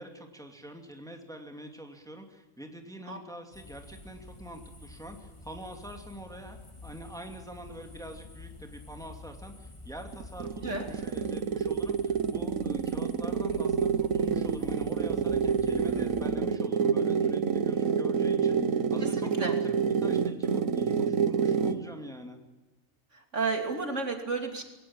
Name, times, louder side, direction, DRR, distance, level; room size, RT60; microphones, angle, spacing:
voice 1, 0.0-22.4, right 1 dB, 5° left, 4 dB, 2.6 m, -45 dB
sound 1, 3.5-16.3, left 2 dB, 25° left, 2.1 m, -48 dB
sound 2, 10.1-21.9, right 6 dB, 90° right, 1.5 m, -28 dB
voice 2, 19.0-19.6 23.3-24.6, right 4 dB, 65° right, 4 dB, 3.3 m, -32 dB
21.5 x 18.5 x 8.9 m, 1.1 s
omnidirectional pair, 1.3 m